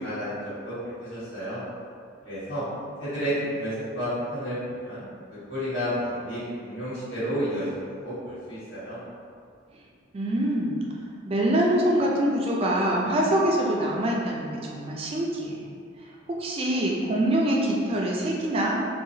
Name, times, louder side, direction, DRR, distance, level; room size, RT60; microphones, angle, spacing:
voice 1, 0.0-1.6 2.2-2.6 3.0-5.0 5.3-9.0, equal, 85° left, -13 dB, 1.5 m, -31 dB
voice 2, 10.1-10.8 11.3-15.6 16.3-18.8, right 1 dB, 30° right, -2 dB, 0.3 m, -24 dB
2.8 x 2.3 x 2.6 m, 2.2 s
head